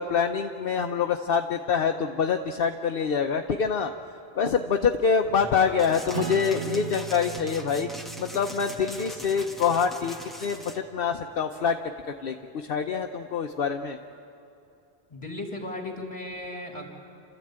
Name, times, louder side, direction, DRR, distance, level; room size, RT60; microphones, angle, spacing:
voice 1, 0.0-3.9 4.4-7.9 8.2-11.9 12.2-14.0, left 6 dB, 65° left, 5 dB, 1.0 m, -26 dB
sound 1, 5.8-10.8, equal, ahead, 1.3 m, -42 dB
Acoustic guitar / Strum, 6.1-11.1, right 8 dB, 70° right, 1.1 m, -39 dB
voice 2, 15.1-16.9, left 2 dB, 30° left, 1 dB, 3.1 m, -36 dB
28.5 x 13.5 x 8.8 m, 2.8 s
omnidirectional pair, 1.0 m